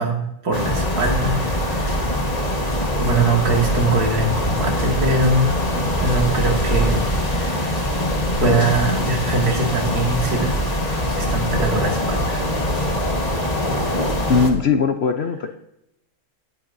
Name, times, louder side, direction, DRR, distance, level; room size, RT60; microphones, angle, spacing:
voice 1, 0.0-2.0 3.0-7.8 8.4-10.5 11.2-12.5, right 2 dB, 85° right, 1 dB, 2.5 m, -22 dB
sound 1, 0.5-14.5, equal, 25° left, 1.5 m, -22 dB
voice 2, 14.3-15.5, left 5 dB, 55° left, 6 dB, 0.9 m, -19 dB
17.5 x 8.7 x 2.7 m, 0.80 s
omnidirectional pair, 1.6 m